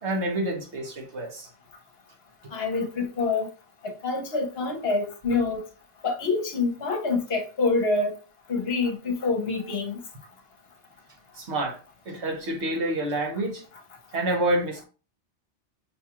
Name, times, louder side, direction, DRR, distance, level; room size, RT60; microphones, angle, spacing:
voice 1, 0.0-1.5 11.4-11.8 12.1-13.6 14.1-14.8, right 1 dB, 70° right, 1.4 m, -28 dB
voice 2, 2.5-3.5 3.8-5.6 6.0-8.1 8.5-10.0, left 3 dB, 60° left, 1.1 m, -26 dB
5.9 x 2.4 x 2.9 m
omnidirectional pair, 1.2 m